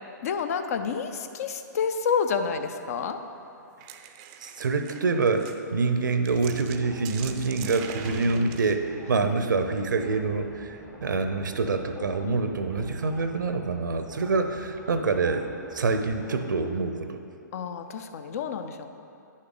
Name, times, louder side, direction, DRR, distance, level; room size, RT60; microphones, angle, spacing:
voice 1, 0.2-3.2 9.1-9.3 12.2-12.4 17.5-18.9, left 6 dB, 50° left, 8 dB, 0.6 m, -29 dB
sound 1, 3.6-9.7, right 9 dB, 30° right, 0.5 m, -43 dB
voice 2, 4.4-17.2, right 4 dB, 75° right, 7 dB, 0.7 m, -26 dB
sound 2, 6.3-16.8, left 2 dB, 15° left, 0.8 m, -48 dB
Drum, 8.0-10.0, equal, 70° left, 1.7 m, -44 dB
9.6 x 6.4 x 3.9 m, 2.7 s
hypercardioid pair, 130°, 10 cm